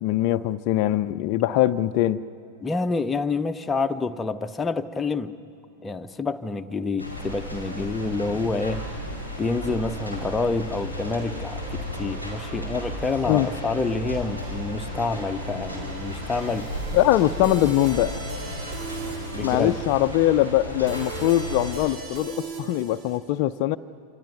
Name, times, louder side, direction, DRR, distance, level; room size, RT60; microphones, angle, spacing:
voice 1, 0.0-2.2 13.2-13.5 16.9-18.2 19.4-23.8, left 14 dB, 45° left, 9 dB, 0.5 m, -22 dB
voice 2, 2.6-5.3 5.8-8.9 9.4-16.7 19.3-19.7, left 3 dB, 15° left, 7 dB, 0.8 m, -28 dB
sound 1, 6.9-23.2, right 4 dB, 45° right, 3.8 m, -41 dB
sound 2, 7.0-21.8, left 1 dB, 85° right, 5.7 m, -34 dB
28.0 x 27.0 x 5.9 m, 2.4 s
figure-of-eight pair, 90°, 0 cm